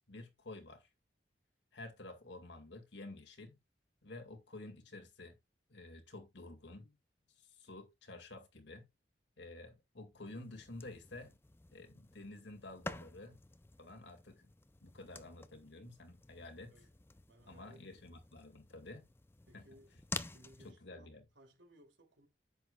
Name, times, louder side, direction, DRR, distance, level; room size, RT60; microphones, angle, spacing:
voice 1, 0.1-0.9 1.7-3.6 4.0-5.4 5.7-7.0 7.4-8.9 9.4-11.3 11.7-13.4 13.8-14.5 14.8-16.7 17.5-19.1 19.5-19.7 20.6-21.2, left 2 dB, 80° left, 2.2 m, -51 dB
sound 1, 10.2-20.7, left 3 dB, 10° left, 0.4 m, -50 dB
voice 2, 17.3-18.1 19.5-22.3, right 1 dB, 85° right, 3.0 m, -63 dB
10.5 x 8.3 x 2.3 m
head